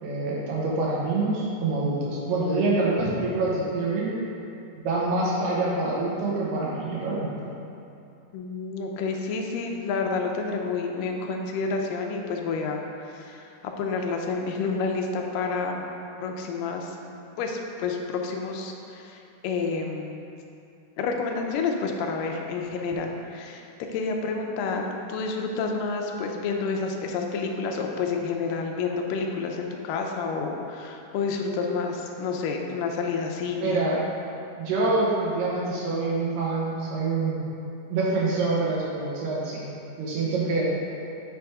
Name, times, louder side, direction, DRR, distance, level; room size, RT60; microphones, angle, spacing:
voice 1, 0.0-4.2 4.8-7.3 33.6-33.9 34.6-37.4 37.9-39.7 40.0-40.7, right 3 dB, 90° right, -5 dB, 3.0 m, -26 dB
voice 2, 8.3-15.8 16.2-17.0 17.4-20.2 21.0-33.8, left 4 dB, 85° left, 2 dB, 2.3 m, -29 dB
8.6 x 3.5 x 4.7 m, 2.7 s
omnidirectional pair, 3.8 m